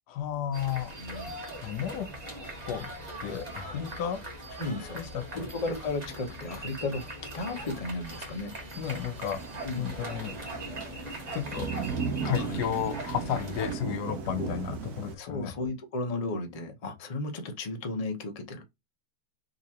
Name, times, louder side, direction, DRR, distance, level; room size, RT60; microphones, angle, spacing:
voice 1, 0.1-1.0 1.6-2.1 2.6-2.9 3.2-4.2 4.9-5.4 8.8-9.4 9.8-10.4 11.3-11.7 12.2-15.5, left 9 dB, 75° left, 1.2 m, -33 dB
sound 1, 0.5-13.7, right 1 dB, 30° right, 1.1 m, -41 dB
voice 2, 1.0-1.4 3.6-4.1 4.5-5.0 5.3-7.0 7.3-8.5 9.6-9.9 12.4-12.6 14.4-14.5 15.2-18.6, left 2 dB, 50° left, 0.4 m, -34 dB
Thunder / Rain, 8.7-15.2, right 6 dB, 70° right, 1.2 m, -37 dB
3.8 x 2.9 x 2.8 m
omnidirectional pair, 1.8 m